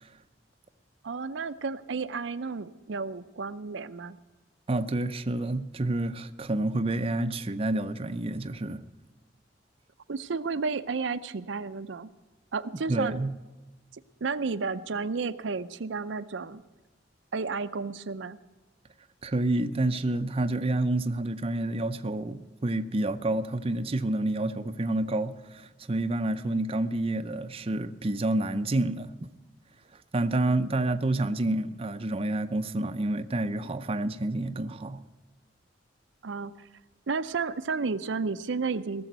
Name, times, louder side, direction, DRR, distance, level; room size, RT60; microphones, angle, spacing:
voice 1, 1.0-4.2 10.1-12.1 12.5-13.3 13.9-16.6 17.3-18.4 30.6-30.7 36.2-36.7 37.1-39.1, right 4 dB, 75° right, 0.6 m, -32 dB
voice 2, 4.7-8.8 12.9-13.3 19.2-29.3 30.1-35.0, right 2 dB, 30° right, 0.6 m, -29 dB
18.0 x 7.0 x 9.2 m
head